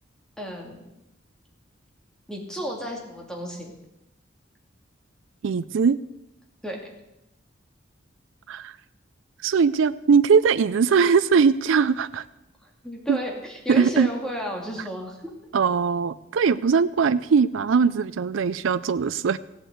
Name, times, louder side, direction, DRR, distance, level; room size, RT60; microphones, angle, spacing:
voice 1, 0.4-0.8 2.3-3.7 6.6-6.8 12.6-15.3 17.0-17.1, equal, 5° left, -1 dB, 2.7 m, -33 dB
voice 2, 5.4-6.0 8.5-8.7 9.4-12.2 13.1-13.2 13.7-14.1 15.5-19.4, right 5 dB, 80° right, 14 dB, 0.4 m, -20 dB
16.0 x 7.9 x 7.8 m, 0.90 s
head